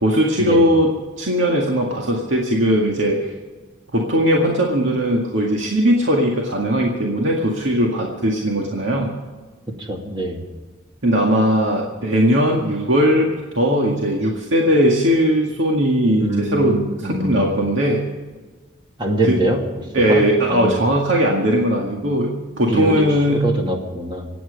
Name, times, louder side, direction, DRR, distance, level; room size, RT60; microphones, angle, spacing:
voice 1, 0.0-3.3 3.9-9.1 11.0-18.1 19.2-19.4 19.9-23.5, equal, 75° right, -1 dB, 2.0 m, -19 dB
voice 2, 9.8-10.5 16.2-17.5 19.0-19.6 20.1-20.8 22.7-23.0 23.4-24.3, right 1 dB, 25° right, 1 dB, 2.3 m, -23 dB
24.5 x 9.2 x 5.2 m, 1.3 s
head